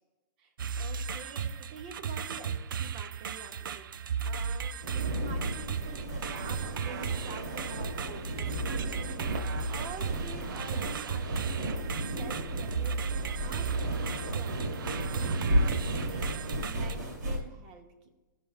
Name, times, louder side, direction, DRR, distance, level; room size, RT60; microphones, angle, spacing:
voice 1, 0.4-16.2 16.6-18.1, right 5 dB, 25° right, 6 dB, 0.7 m, -48 dB
sound 1, 0.6-17.0, right 6 dB, 80° right, 0.4 m, -35 dB
sound 2, 4.8-17.4, right 1 dB, 65° right, 1.5 m, -34 dB
13.0 x 5.7 x 2.4 m, 1.2 s
hypercardioid pair, 175°, 11 cm